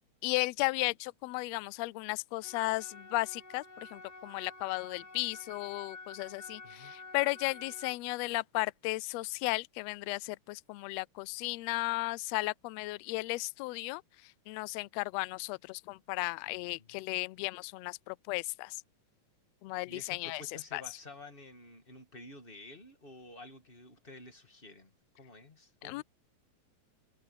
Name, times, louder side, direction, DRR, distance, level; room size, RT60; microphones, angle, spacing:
voice 1, 0.2-14.0 14.5-18.8 19.6-20.4 20.7-20.8 25.8-26.0, left 22 dB, 80° left, 1.5 m, -35 dB
sound 1, 2.4-8.0, left 3 dB, 65° left, 6.2 m, -49 dB
voice 2, 6.6-6.9 16.5-17.0 19.8-26.0, left 2 dB, 20° left, 2.1 m, -51 dB
omnidirectional pair, 3.4 m